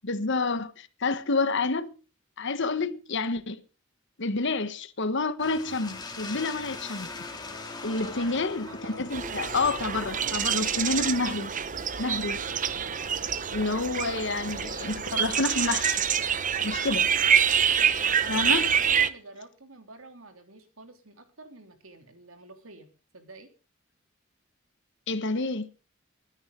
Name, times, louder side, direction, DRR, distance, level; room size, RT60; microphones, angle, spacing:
voice 1, 0.0-1.9 2.4-3.6 4.2-7.1 7.8-11.5 12.0-12.4 13.5-16.0 16.6-17.1 18.3-18.7 25.1-25.7, left 3 dB, 60° left, 1.2 m, -29 dB
sound 1, 5.4-11.4, left 3 dB, 20° left, 2.8 m, -41 dB
voice 2, 8.0-9.2 12.8-13.2 18.0-23.5, right 2 dB, 80° right, 3.1 m, -49 dB
sound 2, 9.1-19.1, right 8 dB, 40° right, 0.9 m, -26 dB
22.5 x 9.8 x 3.8 m
head